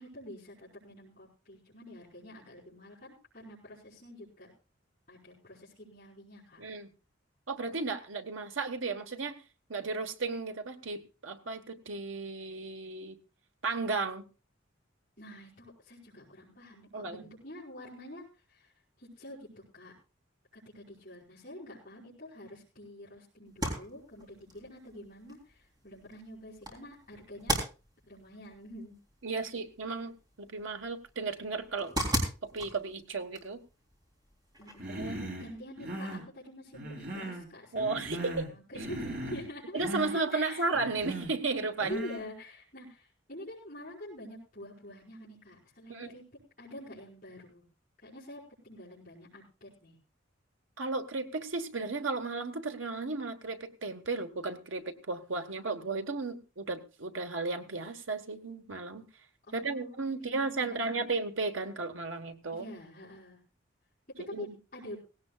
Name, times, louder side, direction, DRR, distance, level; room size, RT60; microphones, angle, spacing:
voice 1, 0.0-4.5 5.1-6.6 15.2-18.2 18.5-18.7 19.0-19.5 19.7-19.9 20.5-27.6 28.1-29.0 34.6-39.8 40.1-40.6 41.8-47.6 48.0-50.0 59.5-61.1 62.5-63.4 64.1-64.5 64.7-65.0, left 1 dB, 45° left, -9 dB, 5.1 m, -47 dB
voice 2, 7.5-9.4 9.7-13.2 13.6-14.3 16.9-17.3 29.2-31.9 32.5-33.6 34.9-35.2 37.7-38.4 39.7-42.0 45.9-46.1 50.8-59.0 59.5-62.7 64.3-64.6, right 3 dB, 85° right, 6 dB, 1.5 m, -34 dB
sound 1, 23.5-35.1, right 1 dB, 20° right, 3.6 m, -39 dB
Human voice, 34.8-35.5 35.8-36.3 36.7-37.5 37.8-38.5 38.8-39.5 39.8-40.1 40.7-41.3 41.8-42.3, right 1 dB, 50° right, 4.8 m, -38 dB
18.0 x 17.0 x 2.4 m, 0.32 s
head